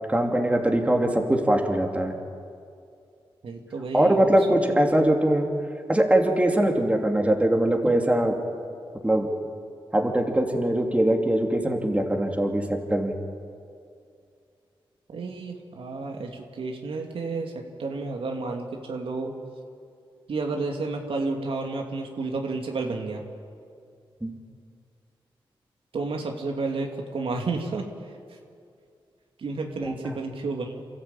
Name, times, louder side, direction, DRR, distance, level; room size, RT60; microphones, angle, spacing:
voice 1, 0.1-2.1 3.9-5.5 5.9-8.4 9.0-9.3 9.9-13.1 24.2-24.3 29.8-30.1, right 1 dB, 15° right, 2 dB, 2.8 m, -22 dB
voice 2, 3.4-4.8 15.1-19.3 20.3-23.2 25.9-27.9 29.4-30.8, right 3 dB, 75° right, 2 dB, 2.5 m, -31 dB
28.0 x 13.5 x 9.0 m, 2.3 s
cardioid pair, 75°, 9 cm